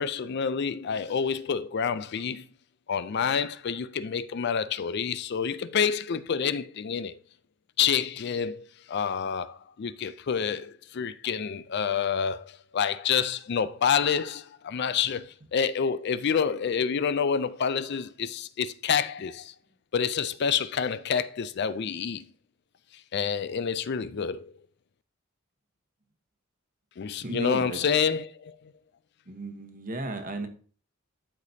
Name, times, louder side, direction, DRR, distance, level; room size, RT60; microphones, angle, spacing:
voice 1, 0.0-2.5 2.9-7.2 7.8-19.5 19.9-22.3 23.1-24.5 27.0-28.7, left 7 dB, 50° left, 0.4 m, -28 dB
voice 2, 27.2-27.8 29.3-30.5, right 2 dB, 40° right, 1.1 m, -34 dB
12.0 x 5.0 x 2.7 m
head